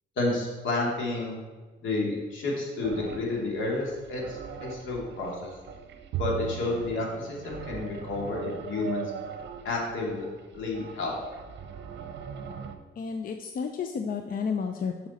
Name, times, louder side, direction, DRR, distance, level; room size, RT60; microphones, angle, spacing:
voice 1, 0.2-1.4 1.8-5.5 6.2-9.0 9.6-10.3 10.5-11.2, left 2 dB, 75° left, -2 dB, 2.3 m, -30 dB
sound 1, 2.8-12.8, right 7 dB, 60° right, 0.8 m, -42 dB
Bowed string instrument, 6.1-9.5, right 14 dB, 75° right, 0.4 m, -39 dB
voice 2, 13.0-15.1, left 6 dB, 45° left, 6 dB, 0.6 m, -31 dB
7.3 x 6.2 x 4.2 m, 1.3 s
cardioid pair, 90°, 20 cm